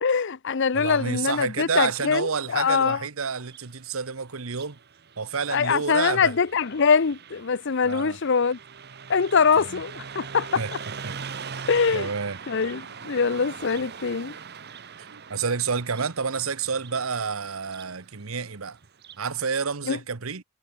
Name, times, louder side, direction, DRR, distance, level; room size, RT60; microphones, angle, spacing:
voice 1, 0.0-3.0 5.5-8.6 9.1-10.6 11.7-12.1 12.5-14.3 19.9-20.0, left 5 dB, 60° left, 0.6 m, -23 dB
voice 2, 0.7-4.8 5.2-6.3 7.8-8.2 9.6-9.8 10.5-10.7 11.0-11.1 11.9-12.4 15.0-18.8 19.2-20.4, right 5 dB, 80° right, 1.1 m, -29 dB
Car passing by, 3.3-19.3, right 6 dB, 50° right, 1.1 m, -42 dB
head